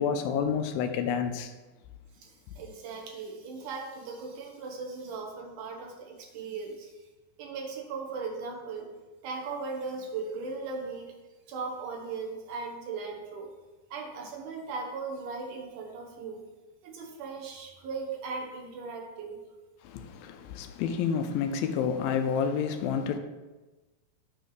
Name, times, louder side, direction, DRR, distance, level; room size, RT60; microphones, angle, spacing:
voice 1, 0.0-1.5 19.8-23.2, left 7 dB, 80° left, 2.2 m, -29 dB
voice 2, 2.2-7.0 7.4-8.9 9.2-11.1 11.5-13.5 13.9-16.4 16.8-19.4, right 4 dB, 65° right, 2.2 m, -38 dB
8.9 x 3.2 x 6.5 m
omnidirectional pair, 4.5 m